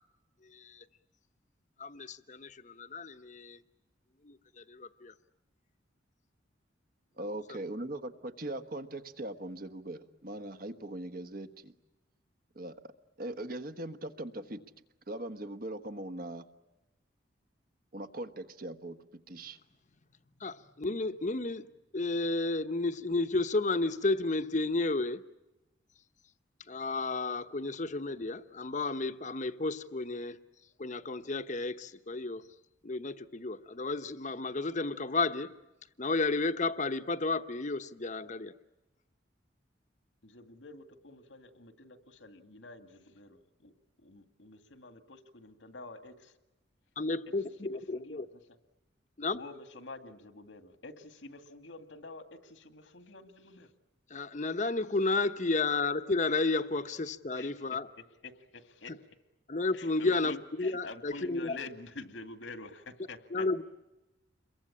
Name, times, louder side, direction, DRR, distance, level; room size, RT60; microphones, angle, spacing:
voice 1, 0.5-0.8 1.8-3.6 4.2-5.1 20.4-21.6 21.9-25.2 26.7-30.4 30.8-32.4 32.8-35.5 36.0-38.5 47.0-48.3 49.2-49.4 54.1-57.9 59.5-61.6 63.3-63.6, left 3 dB, 40° left, 11 dB, 1.0 m, -32 dB
voice 2, 7.2-11.7 12.5-12.8 13.2-14.6 15.1-16.4 17.9-19.0 19.3-19.6, right 1 dB, 50° right, 9 dB, 1.4 m, -40 dB
voice 3, 40.2-43.7 44.0-46.3 47.4-48.3 49.3-53.7 57.3-57.5 58.2-58.9 59.7-63.6, left 3 dB, 90° left, 8 dB, 2.2 m, -48 dB
28.0 x 23.0 x 8.7 m, 0.99 s
head